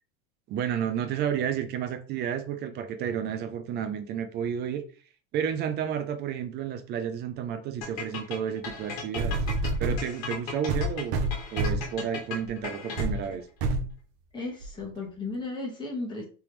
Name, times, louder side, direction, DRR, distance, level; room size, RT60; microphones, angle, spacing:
voice 1, 0.5-4.8 5.3-9.4 9.8-11.2 11.5-13.5, right 8 dB, 25° right, 0.4 m, -31 dB
sound 1, 7.8-13.3, left 5 dB, 55° left, 1.5 m, -37 dB
sound 2, 8.7-8.8 9.2-10.1 10.7-11.9 12.4-12.6 13.0-13.2 13.6-13.9 14.6-14.7, right 2 dB, 45° right, 0.7 m, -27 dB
voice 2, 14.3-16.2, left 3 dB, 10° left, 1.4 m, -35 dB
3.4 x 3.0 x 3.0 m
supercardioid pair, 130°, 40 cm